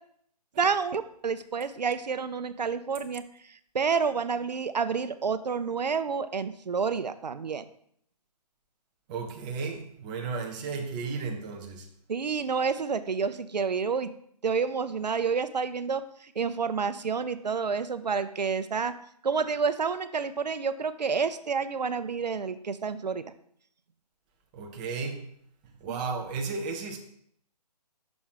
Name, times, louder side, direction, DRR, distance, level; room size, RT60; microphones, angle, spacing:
voice 1, 0.6-7.7 12.1-14.1 14.4-18.9 19.2-23.3 25.9-26.0, right 5 dB, 80° right, 0.5 m, -29 dB
voice 2, 9.1-11.9 24.5-25.2 25.8-27.0, right 4 dB, 10° right, 0.4 m, -34 dB
6.0 x 3.6 x 5.5 m
figure-of-eight pair, 145°, 21 cm